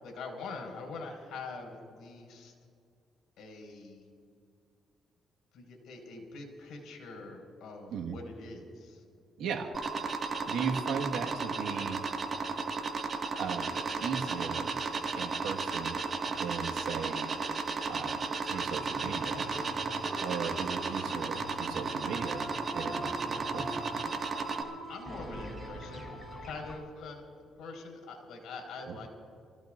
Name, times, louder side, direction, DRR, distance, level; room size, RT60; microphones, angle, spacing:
voice 1, 0.0-2.5 3.4-4.0 5.5-9.0 24.9-26.2 26.4-29.1, left 3 dB, 80° left, 1 dB, 5.0 m, -44 dB
sound 1, 9.7-24.6, right 4 dB, 40° right, 1.8 m, -34 dB
voice 2, 10.4-12.0 13.4-14.7 15.1-16.0 16.3-17.3 17.8-19.5 20.2-23.8 28.9-29.0, right 6 dB, 85° right, 1 dB, 1.7 m, -37 dB
sound 2, 18.4-26.8, equal, 10° left, 4.4 m, -44 dB
28.0 x 16.5 x 2.6 m, 2.4 s
cardioid pair, 90°, 0 cm